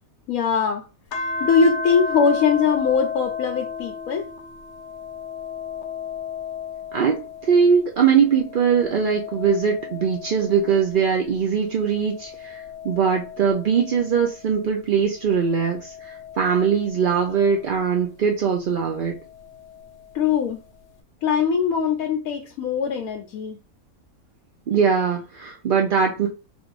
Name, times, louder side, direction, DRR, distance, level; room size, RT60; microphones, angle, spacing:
voice 1, 0.3-0.8 1.4-4.3 20.1-20.6 21.2-23.6, left 6 dB, 85° left, 1.1 m, -21 dB
sound 1, 1.1-7.8 8.3-11.2 11.8-14.6 15.3-17.8 19.1-20.2, left 5 dB, 60° left, 0.9 m, -34 dB
voice 2, 6.9-19.2 24.7-26.3, right 6 dB, 55° right, 0.6 m, -21 dB
3.6 x 2.5 x 4.6 m
omnidirectional pair, 1.4 m